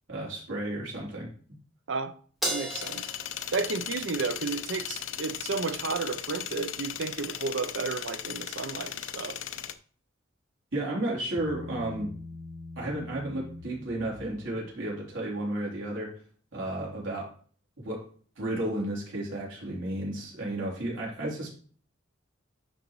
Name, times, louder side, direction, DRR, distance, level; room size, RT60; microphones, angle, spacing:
voice 1, 0.1-1.3 10.7-12.1 12.8-16.2 16.5-17.3 17.8-18.1 18.4-21.5, right 1 dB, 90° right, 3.1 m, -33 dB
Crash cymbal, 2.4-4.9, equal, ahead, 1.8 m, -36 dB
voice 2, 2.4-3.1 3.5-9.4, right 4 dB, 70° right, 0.6 m, -32 dB
sound 1, 2.7-9.7, left 10 dB, 85° left, 0.5 m, -37 dB
Bass guitar, 11.4-14.8, left 2 dB, 15° left, 1.0 m, -43 dB
11.0 x 4.0 x 3.1 m
head